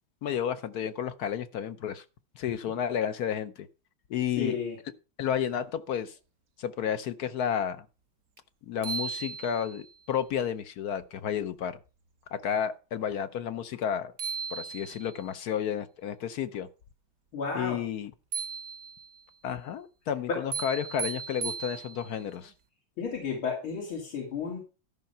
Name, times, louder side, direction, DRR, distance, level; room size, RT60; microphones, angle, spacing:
voice 1, 0.2-2.0 2.4-3.7 4.1-4.6 5.2-6.1 6.6-7.8 8.7-11.8 12.3-14.1 14.5-16.7 17.5-18.1 19.4-22.5, left 8 dB, 65° left, 1.0 m, -31 dB
voice 2, 4.4-4.8 17.3-17.8 20.3-20.4 23.0-24.6, left 5 dB, 90° left, 3.2 m, -32 dB
sound 1, 8.4-8.5 8.8-9.9 13.8-13.9 14.2-15.3 18.3-19.2 20.5-22.3, right 6 dB, 55° right, 1.1 m, -36 dB
13.0 x 5.6 x 5.5 m
omnidirectional pair, 2.2 m